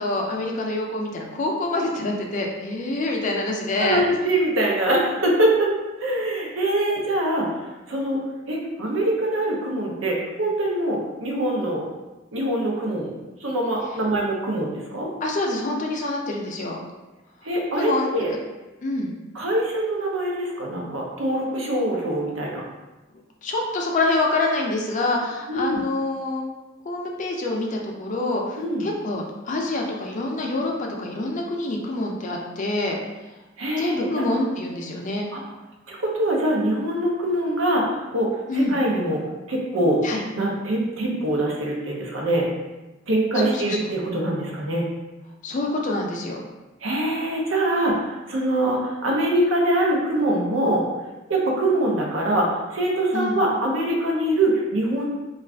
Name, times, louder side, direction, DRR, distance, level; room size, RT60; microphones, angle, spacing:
voice 1, 0.0-4.0 15.2-16.8 17.8-18.1 18.8-19.1 23.4-26.4 26.9-33.0 33.8-35.3 38.5-38.8 40.0-40.2 43.3-43.9 45.4-46.4 53.1-53.4, left 2 dB, 40° left, 0 dB, 0.4 m, -26 dB
voice 2, 3.8-7.5 7.9-8.2 8.5-11.9 12.3-13.1 13.4-15.1 17.4-18.3 19.3-22.6 25.5-25.8 28.6-28.9 33.6-34.3 35.3-35.4 35.9-39.2 39.5-40.0 40.3-42.5 43.1-44.8 46.8-50.8 51.3-55.1, right 1 dB, 80° right, -2 dB, 0.7 m, -23 dB
2.4 x 2.4 x 3.3 m, 1.1 s
head